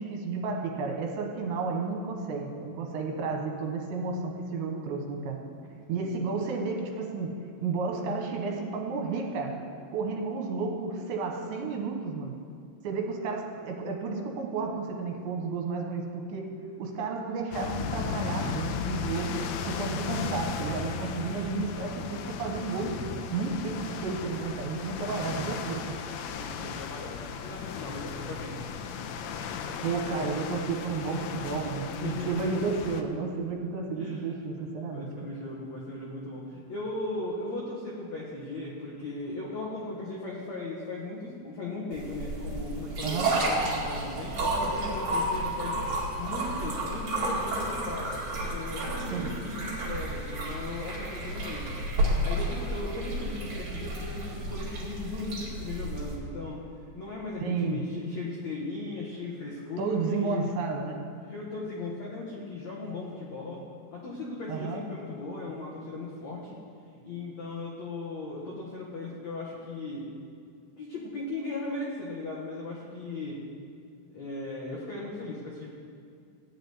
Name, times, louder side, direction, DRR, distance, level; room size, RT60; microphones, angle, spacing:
voice 1, 0.0-5.4 5.9-7.3 7.6-9.6 9.9-12.3 12.8-16.5 16.8-19.4 19.7-22.9 23.3-26.0 29.8-35.1 43.0-43.4 49.1-49.3 57.4-57.8 59.8-61.0 64.5-64.8, right 4 dB, 75° right, 1 dB, 3.4 m, -32 dB
sound 1, 17.5-33.0, left 6 dB, 90° left, 2.3 m, -36 dB
voice 2, 26.3-28.6 31.9-32.3 33.9-34.4 34.9-48.2 48.5-56.7 56.9-60.0 60.2-60.6 61.3-63.6 63.9-66.6 66.9-70.1 70.8-73.4 74.1-75.7, left 2 dB, 70° left, -5 dB, 1.6 m, -37 dB
sound 2, 41.9-56.2, right 1 dB, 45° right, 2.9 m, -31 dB
14.5 x 5.1 x 9.4 m, 2.3 s
omnidirectional pair, 5.4 m